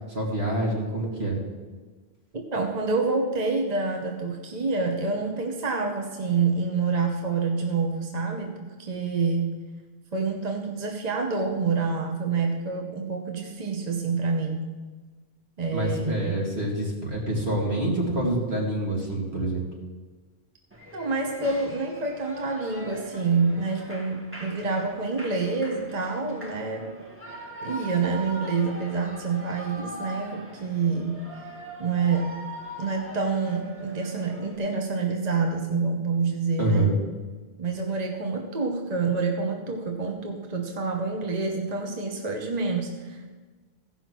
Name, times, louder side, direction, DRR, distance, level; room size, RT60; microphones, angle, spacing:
voice 1, 0.1-1.4 15.7-19.7 36.6-36.9, right 1 dB, 75° right, -2 dB, 2.7 m, -26 dB
voice 2, 2.3-9.6 10.1-14.7 15.6-16.4 20.9-26.9 27.6-31.3 31.8-32.4 32.8-36.9 37.6-43.3, right 4 dB, 40° right, 2 dB, 1.1 m, -27 dB
Shout / Cheering, 20.7-34.6, right 1 dB, 10° right, 1.3 m, -41 dB
15.5 x 5.6 x 6.1 m, 1.3 s
omnidirectional pair, 1.1 m